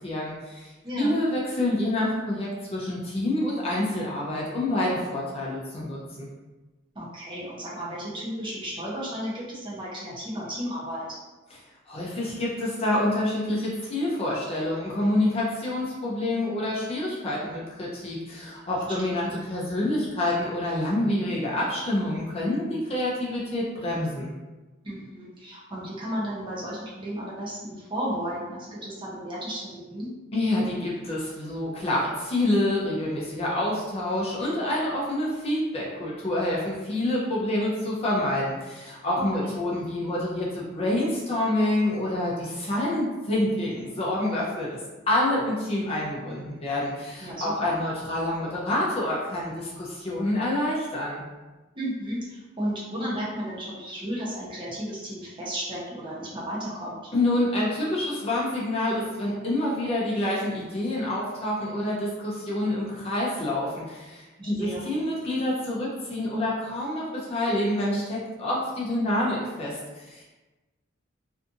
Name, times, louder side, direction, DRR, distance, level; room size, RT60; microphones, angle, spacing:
voice 1, 0.0-6.3 11.9-24.3 30.3-44.8 45.1-51.2 57.1-70.2, left 1 dB, 30° left, -5 dB, 0.5 m, -27 dB
voice 2, 0.8-1.2 6.9-11.1 19.0-19.1 24.8-30.1 39.3-39.5 47.2-47.8 51.7-57.0 64.4-64.8, equal, 25° right, -6 dB, 0.7 m, -33 dB
2.6 x 2.4 x 2.5 m, 1.2 s
head